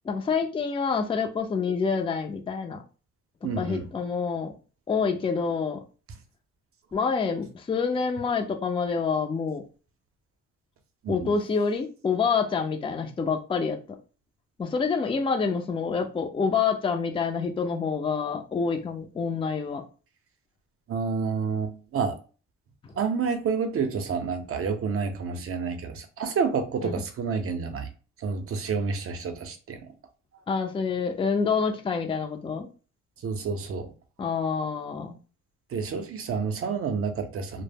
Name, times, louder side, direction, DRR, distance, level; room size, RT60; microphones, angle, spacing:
voice 1, 0.0-2.8 3.4-4.5 4.9-5.8 6.9-9.6 11.1-14.0 14.6-19.8 26.8-27.0 30.5-32.7 34.2-35.1, left 5 dB, 20° left, 0.4 m, -27 dB
voice 2, 3.4-3.9 11.0-11.3 20.9-22.2 23.0-27.9 28.2-29.9 33.2-33.9 35.7-37.6, right 5 dB, 50° right, 0.6 m, -29 dB
2.0 x 2.0 x 3.3 m
cardioid pair, 90°, 30 cm